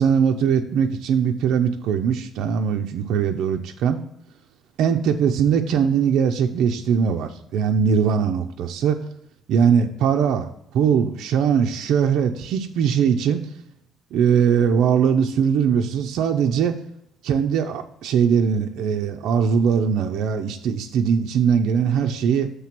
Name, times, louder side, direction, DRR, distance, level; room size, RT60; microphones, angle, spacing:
voice 1, 0.0-4.0 4.8-9.0 9.5-10.5 10.7-13.5 14.1-16.8 17.2-22.5, right 7 dB, 75° right, 4 dB, 0.5 m, -20 dB
7.2 x 3.3 x 5.9 m, 0.75 s
cardioid pair, 135°, 0 cm